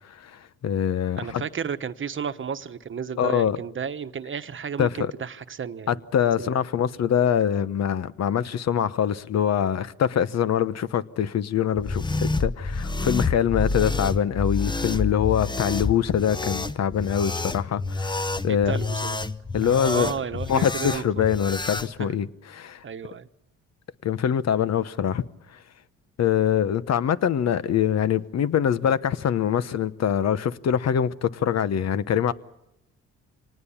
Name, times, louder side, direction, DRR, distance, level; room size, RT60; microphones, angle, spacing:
voice 1, 0.6-1.4 3.2-3.6 4.8-5.1 5.9-18.8 19.5-20.1 20.5-22.3 22.5-22.8 24.0-25.2 26.2-32.3, left 9 dB, 60° left, 1.1 m, -24 dB
voice 2, 1.2-6.0 6.4-6.6 18.5-19.2 19.6-21.2 22.0-22.3 22.8-23.3, right 7 dB, 40° right, 1.2 m, -33 dB
sound 1, 11.7-21.9, left 3 dB, 15° left, 0.9 m, -28 dB
26.0 x 19.0 x 7.2 m
cardioid pair, 90°, 30 cm